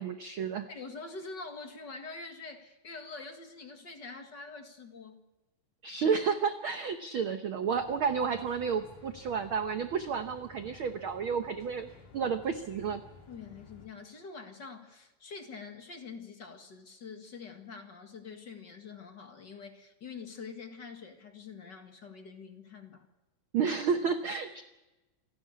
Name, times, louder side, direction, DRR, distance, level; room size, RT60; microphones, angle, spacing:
voice 1, 0.0-0.7 5.8-13.0 23.5-24.6, right 6 dB, 65° right, 8 dB, 1.3 m, -31 dB
voice 2, 0.7-5.2 12.9-13.0 13.3-23.1, left 4 dB, 40° left, 5 dB, 2.1 m, -45 dB
sound 1, 7.7-13.9, left 4 dB, 90° left, 4.5 m, -54 dB
28.5 x 11.5 x 9.7 m, 1.0 s
omnidirectional pair, 3.6 m